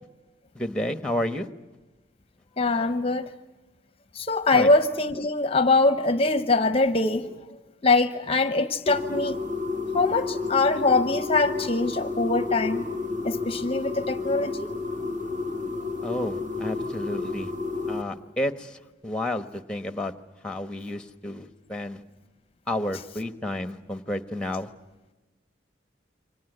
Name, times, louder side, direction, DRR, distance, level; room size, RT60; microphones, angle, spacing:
voice 1, 0.5-1.5 4.5-4.7 16.0-17.5 17.9-20.1 20.4-22.0 22.7-24.7, left 1 dB, 5° left, 10 dB, 1.1 m, -31 dB
voice 2, 2.6-3.3 4.1-7.3 7.8-9.4 9.9-12.9 13.2-14.7, left 3 dB, 30° left, 11 dB, 0.8 m, -23 dB
sound 1, 8.9-18.0, left 3 dB, 45° right, 2.9 m, -31 dB
28.5 x 24.5 x 7.9 m, 1.2 s
head